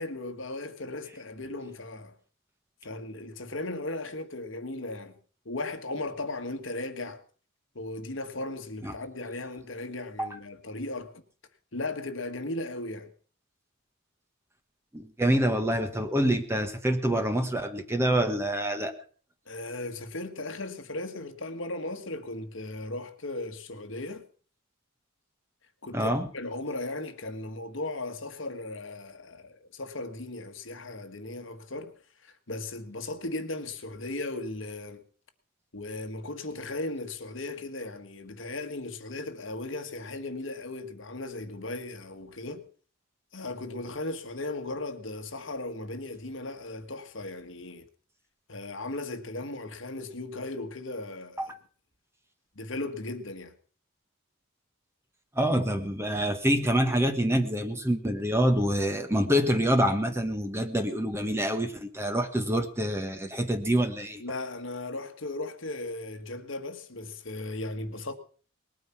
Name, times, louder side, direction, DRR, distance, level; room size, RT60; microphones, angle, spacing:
voice 1, 0.0-2.2 2.8-5.2 5.4-7.2 7.7-11.2 11.7-13.1 19.5-24.2 25.8-31.9 32.2-35.0 35.7-42.6 43.3-47.9 48.5-51.5 52.5-53.5 64.2-68.1, left 2 dB, 60° left, 1.6 m, -37 dB
voice 2, 14.9-19.0 25.9-26.3 51.4-51.5 55.3-64.2, equal, 10° right, 1.4 m, -26 dB
20.0 x 9.4 x 5.9 m
head